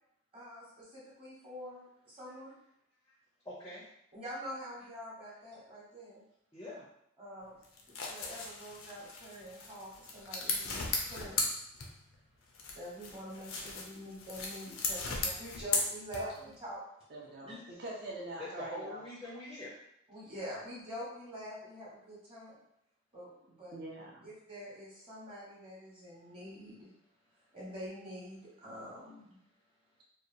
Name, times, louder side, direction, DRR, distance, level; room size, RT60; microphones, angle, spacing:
voice 1, 0.3-2.5 4.1-6.2 7.2-7.6 7.9-11.4 12.7-16.8 17.4-17.6 20.1-22.6 23.1-23.3 23.6-23.8 24.2-26.9 27.5-29.4, equal, 25° right, -7 dB, 1.0 m, -46 dB
voice 2, 3.4-3.8 6.5-6.9 18.4-19.8, left 1 dB, 15° left, -6 dB, 0.4 m, -44 dB
sound 1, 7.6-12.2 12.5-16.5, left 3 dB, 90° left, 0.5 m, -37 dB
voice 3, 16.1-16.5 17.1-19.0 23.5-24.3, right 1 dB, 50° right, -3 dB, 0.5 m, -43 dB
2.8 x 2.1 x 2.6 m, 0.77 s
head